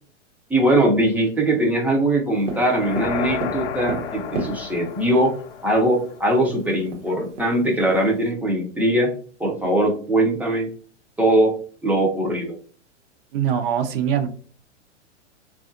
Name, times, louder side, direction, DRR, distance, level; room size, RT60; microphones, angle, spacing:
voice 1, 0.5-5.3 5.6-9.1 9.4-10.7 11.2-11.5 11.8-12.6, right 1 dB, 5° right, 0 dB, 0.4 m, -21 dB
sound 1, 2.5-6.6, left 7 dB, 50° left, 0.5 m, -32 dB
Tap, 2.5-5.0 6.0-6.1 6.4-6.5 6.9-8.3, right 3 dB, 80° right, 1.0 m, -32 dB
voice 2, 13.3-14.3, right 9 dB, 50° right, 7 dB, 0.6 m, -22 dB
3.4 x 2.4 x 2.5 m, 0.42 s
hypercardioid pair, 115°, 36 cm